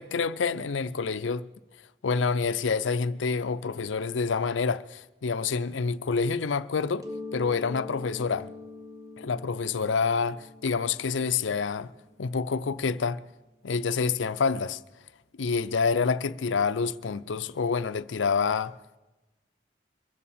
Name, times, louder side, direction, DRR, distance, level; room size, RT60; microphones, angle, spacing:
voice 1, 0.0-1.5 2.0-7.1 7.3-8.5 9.2-11.9 12.2-13.2 13.6-14.8 15.4-18.8, left 5 dB, 85° left, 0.5 m, -27 dB
Mallet percussion, 7.0-12.6, left 3 dB, 20° right, 1.3 m, -43 dB
23.5 x 8.4 x 7.2 m
head